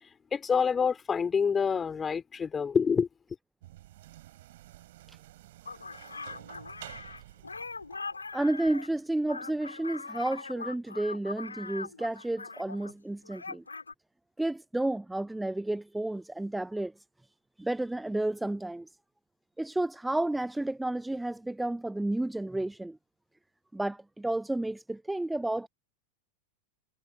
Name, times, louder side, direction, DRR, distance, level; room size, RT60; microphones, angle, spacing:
voice 1, 0.3-3.1, left 6 dB, 20° left, 2.9 m, -27 dB
sound 1, 3.6-8.8, right 15 dB, 55° right, 4.9 m, -51 dB
sound 2, 5.6-13.0 13.2-13.9, left 4 dB, 80° left, 5.7 m, -41 dB
voice 2, 8.3-13.6 14.4-16.9 17.6-18.9 19.6-23.0 23.7-25.7, right 1 dB, 5° right, 0.5 m, -31 dB
figure-of-eight pair, 90°, 0 cm